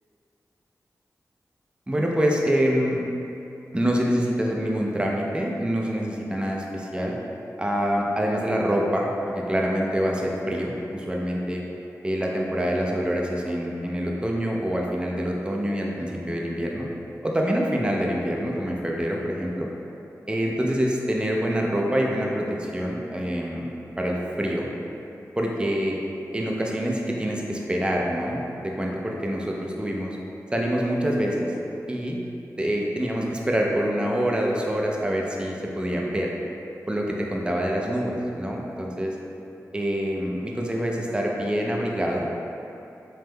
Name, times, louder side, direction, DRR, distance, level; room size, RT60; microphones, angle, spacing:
voice 1, 1.9-3.0 3.7-7.2 7.6-11.6 12.0-16.9 17.2-19.7 20.3-23.7 24.0-24.7 25.4-26.0 26.3-30.2 30.5-31.5 31.9-32.2 32.6-36.3 36.9-39.1 39.7-42.3, equal, 15° right, -1 dB, 0.4 m, -26 dB
3.4 x 3.0 x 2.2 m, 2.8 s
cardioid pair, 40°, 6 cm